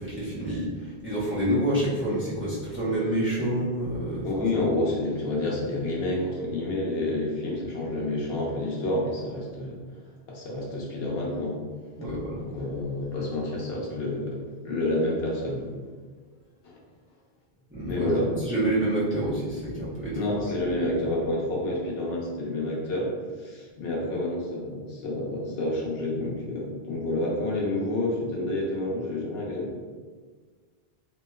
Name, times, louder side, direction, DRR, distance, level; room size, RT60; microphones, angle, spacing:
voice 1, 0.0-4.4 12.0-12.5 17.7-18.1 18.4-20.2, right 1 dB, 15° right, -10 dB, 0.8 m, -28 dB
voice 2, 4.2-9.8 10.3-11.6 12.5-15.6 16.6-16.8 17.9-18.3 20.1-23.1 23.4-29.8, left 1 dB, 70° left, -3 dB, 0.9 m, -29 dB
2.9 x 2.9 x 2.3 m, 1.5 s
omnidirectional pair, 1.1 m